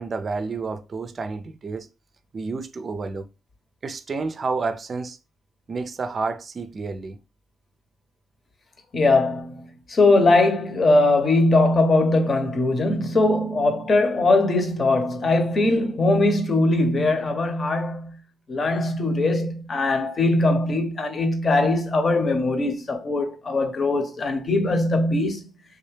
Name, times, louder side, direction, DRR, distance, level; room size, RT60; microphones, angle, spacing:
voice 1, 0.0-1.9 2.3-3.3 3.8-5.2 5.7-7.2, right 4 dB, 40° right, 0.5 m, -30 dB
voice 2, 8.9-18.2 18.5-25.4, left 2 dB, 40° left, 1.0 m, -21 dB
3.5 x 2.7 x 3.3 m
cardioid pair, 90°, 0 cm